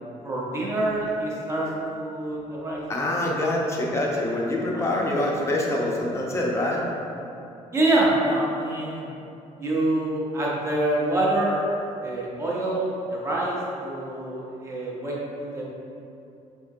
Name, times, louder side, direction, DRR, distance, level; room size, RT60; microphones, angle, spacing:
voice 1, 0.2-2.8 4.7-5.0 7.7-9.1 9.6-11.7 12.0-15.6, right 1 dB, 20° right, -4 dB, 0.7 m, -26 dB
voice 2, 2.9-6.8, left 1 dB, 20° left, -2 dB, 0.6 m, -25 dB
5.5 x 3.5 x 2.6 m, 2.7 s
cardioid pair, 175°, 14 cm